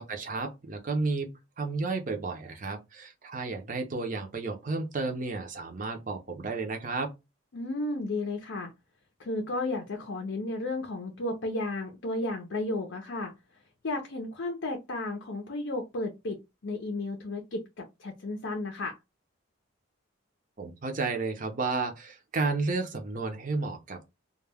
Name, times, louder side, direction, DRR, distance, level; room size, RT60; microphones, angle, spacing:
voice 1, 0.0-7.1 20.6-24.0, right 3 dB, 40° right, 0.5 m, -32 dB
voice 2, 7.5-8.7 9.2-13.3 13.8-18.9, left 2 dB, 60° left, 0.5 m, -33 dB
2.2 x 2.1 x 3.3 m
head